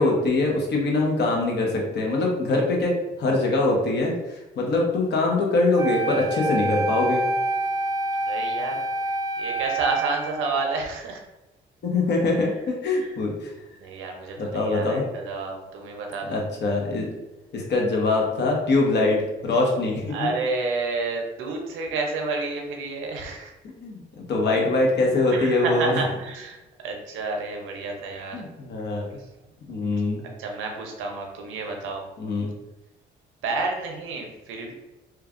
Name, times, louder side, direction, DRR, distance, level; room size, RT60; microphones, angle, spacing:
voice 1, 0.0-7.2 11.8-13.5 14.4-15.0 16.3-17.1 17.5-20.3 23.8-26.0 28.3-29.1 29.7-30.2 32.2-32.5, left 2 dB, 60° left, -1 dB, 0.9 m, -23 dB
Wind instrument woodwind instrument, 5.7-10.9, right 2 dB, 20° right, 0.4 m, -27 dB
voice 2, 8.2-11.2 13.0-13.2 13.8-16.4 20.1-23.5 25.3-26.6 26.8-28.4 29.9-32.0 33.4-34.7, right 3 dB, 90° right, 2 dB, 0.6 m, -30 dB
3.1 x 2.3 x 2.5 m, 1.0 s
cardioid pair, 90°, 20 cm